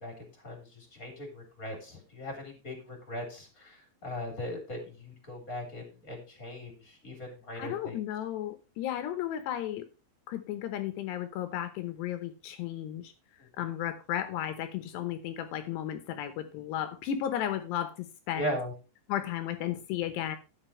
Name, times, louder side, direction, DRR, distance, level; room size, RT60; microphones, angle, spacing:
voice 1, 0.0-8.0 18.3-18.7, equal, 20° left, 4 dB, 3.4 m, -39 dB
voice 2, 7.6-9.8 10.3-13.1 13.6-18.6 19.1-20.4, left 11 dB, 75° left, 10 dB, 2.8 m, -34 dB
12.5 x 9.2 x 3.2 m, 0.31 s
omnidirectional pair, 5.5 m